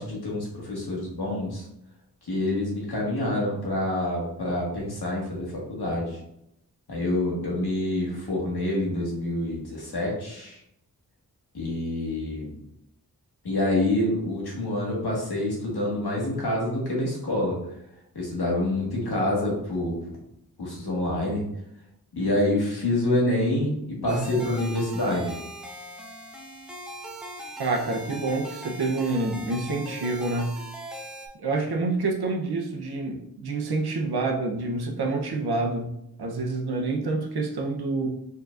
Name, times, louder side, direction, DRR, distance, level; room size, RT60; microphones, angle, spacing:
voice 1, 0.0-1.7 2.2-6.2 6.9-10.6 11.5-12.6 13.4-17.6 18.1-20.0 20.6-21.5 22.1-25.4, left 1 dB, 80° left, -3 dB, 1.6 m, -27 dB
sound 1, 24.1-31.3, right 1 dB, ahead, 0.9 m, -40 dB
voice 2, 27.6-30.6 31.4-35.9 36.2-38.1, right 3 dB, 80° right, 2 dB, 0.8 m, -27 dB
4.7 x 3.9 x 2.5 m, 0.78 s
wide cardioid pair, 85°, 38 cm